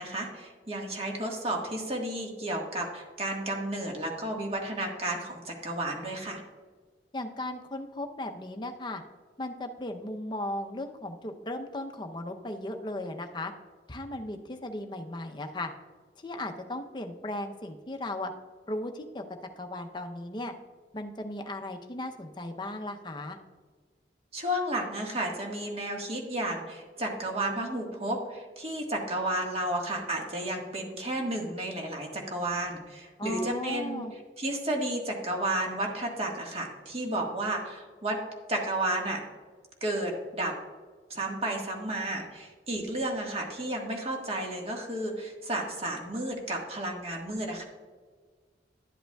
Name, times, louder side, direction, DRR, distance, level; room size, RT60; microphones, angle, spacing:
voice 1, 0.0-6.4 24.3-34.0 34.4-38.2 38.5-39.3 39.8-40.5 41.1-47.6, right 1 dB, 35° right, 0 dB, 1.5 m, -32 dB
voice 2, 7.1-9.0 9.4-13.5 13.9-15.7 16.2-18.3 18.7-19.2 19.6-20.5 20.9-23.4 33.2-34.1, left 1 dB, 25° left, 5 dB, 0.6 m, -36 dB
12.0 x 7.8 x 2.3 m, 1.5 s
head